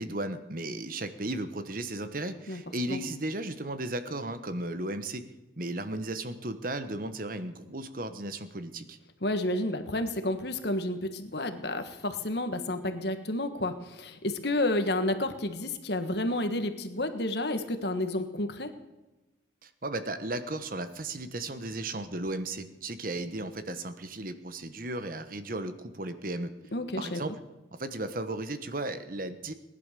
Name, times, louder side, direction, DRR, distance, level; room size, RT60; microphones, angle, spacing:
voice 1, 0.0-5.2 5.6-9.0 19.6-26.5 27.0-27.4 27.8-29.5, right 2 dB, 45° right, 10 dB, 1.1 m, -35 dB
voice 2, 9.2-18.7 26.7-27.2, left 1 dB, 60° left, 8 dB, 1.6 m, -30 dB
19.5 x 11.0 x 6.8 m, 1.1 s
head